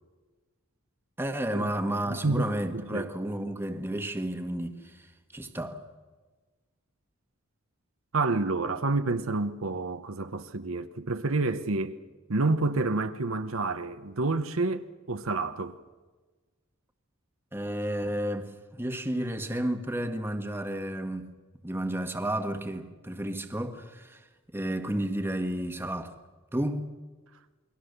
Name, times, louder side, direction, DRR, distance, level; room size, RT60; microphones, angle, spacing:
voice 1, 1.2-5.1 5.3-5.8 17.5-21.3 21.6-24.2 24.5-26.2 26.5-26.8, right 1 dB, 10° right, 1.5 m, -32 dB
voice 2, 2.1-3.1 8.1-12.0 12.3-15.8, right 3 dB, 70° right, 1.0 m, -29 dB
28.5 x 21.5 x 6.8 m
head